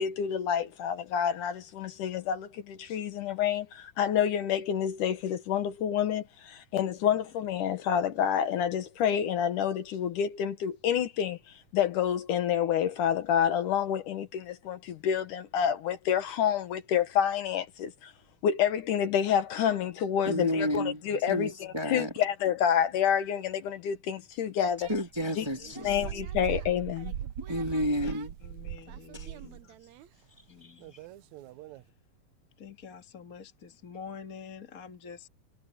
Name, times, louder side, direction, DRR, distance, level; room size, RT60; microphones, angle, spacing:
voice 1, 0.0-11.4 11.7-18.1 18.4-24.9 25.4-25.5 25.8-27.1, left 9 dB, 70° left, 2.6 m, -28 dB
voice 2, 20.3-21.0 21.3-22.1 24.9-26.0 27.4-28.3 29.1-29.3 30.6-30.7, equal, 10° right, 2.0 m, -31 dB
sound 1, 24.8-30.1 30.8-31.8, right 11 dB, 75° right, 1.8 m, -40 dB
voice 3, 28.4-29.6 30.5-31.0 32.6-35.3, left 6 dB, 35° left, 1.5 m, -46 dB
omnidirectional pair, 4.0 m